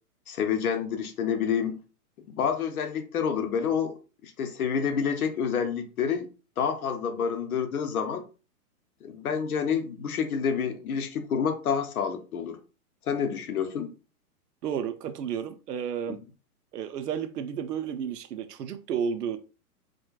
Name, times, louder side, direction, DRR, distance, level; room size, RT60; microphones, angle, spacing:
voice 1, 0.3-1.8 2.3-6.3 6.6-8.2 9.0-12.6 13.1-13.9, left 7 dB, 65° left, 0.8 m, -28 dB
voice 2, 14.6-16.2 16.7-19.4, right 8 dB, 90° right, 0.7 m, -32 dB
4.9 x 2.2 x 2.3 m
hypercardioid pair, 175°, 46 cm